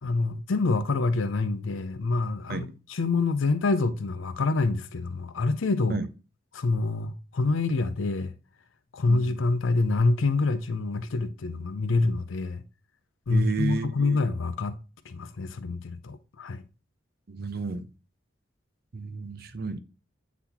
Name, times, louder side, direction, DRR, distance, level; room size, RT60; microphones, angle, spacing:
voice 1, 0.0-6.0 6.5-8.3 8.9-12.6 13.3-14.8 15.0-16.6, left 3 dB, 90° left, 0.5 m, -26 dB
voice 2, 9.1-9.4 13.3-14.2 17.3-17.9 18.9-19.8, right 4 dB, 50° right, 0.5 m, -32 dB
8.2 x 4.0 x 2.8 m
head